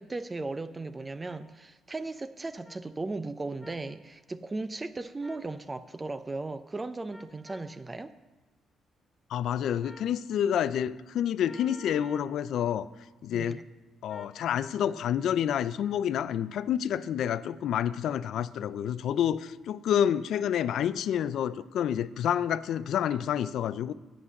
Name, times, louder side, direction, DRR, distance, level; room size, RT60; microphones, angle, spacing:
voice 1, 0.0-8.1 13.3-13.6, right 3 dB, 20° right, 11 dB, 0.5 m, -37 dB
sound 1, 1.2-1.4 2.6-2.8 3.6-3.8 5.2-5.5 7.1-7.7 9.8-10.1 11.4-12.3 14.1-14.4, left 2 dB, 5° left, 2.1 m, -51 dB
voice 2, 9.3-12.9 13.2-13.6 14.0-23.9, left 9 dB, 75° left, 16 dB, 0.4 m, -28 dB
8.1 x 7.6 x 7.1 m, 1.1 s
cardioid pair, 90°, 0 cm